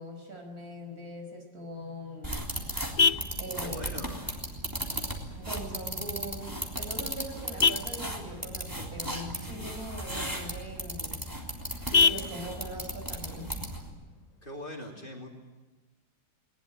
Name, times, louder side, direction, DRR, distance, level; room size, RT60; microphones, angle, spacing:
voice 1, 0.0-2.4 3.4-3.9 5.3-11.2 12.0-13.7, equal, 50° right, 4 dB, 5.7 m, -41 dB
Vehicle horn car horn honking, 1.7-14.7, left 4 dB, 70° left, 0.3 m, -33 dB
sound 1, 2.2-13.9, right 1 dB, 10° right, 3.4 m, -36 dB
voice 2, 3.6-4.3 14.4-15.3, left 1 dB, 30° left, 1 dB, 3.3 m, -41 dB
21.0 x 20.5 x 9.0 m, 1.2 s
omnidirectional pair, 1.9 m